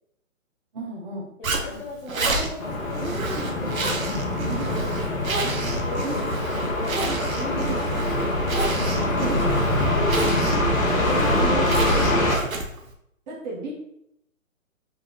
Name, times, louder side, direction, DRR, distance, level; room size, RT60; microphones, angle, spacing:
voice 1, 0.7-1.3 9.2-9.3 10.2-10.6 11.1-11.8 13.3-13.7, right 1 dB, 35° right, -2 dB, 1.3 m, -34 dB
voice 2, 1.4-7.1 7.3-8.0 8.7-10.2 10.8-12.0, left 2 dB, 40° left, -3 dB, 1.3 m, -37 dB
Zipper (clothing), 1.4-12.9, right 3 dB, 80° right, 1.0 m, -30 dB
sound 1, 2.6-12.4, left 1 dB, 70° left, 1.5 m, -24 dB
4.6 x 3.3 x 3.5 m, 0.76 s
hypercardioid pair, 150°, 41 cm